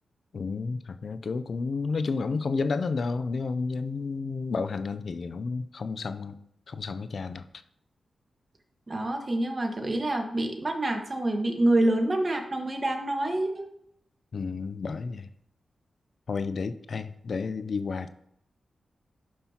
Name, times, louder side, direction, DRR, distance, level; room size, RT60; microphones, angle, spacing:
voice 1, 0.3-6.4 6.7-7.5 14.3-15.3 16.3-18.1, left 4 dB, 65° left, 12 dB, 0.5 m, -31 dB
voice 2, 8.9-13.7, right 1 dB, 40° right, 3 dB, 1.5 m, -27 dB
11.0 x 5.5 x 2.9 m, 0.75 s
cardioid pair, 45°, 0 cm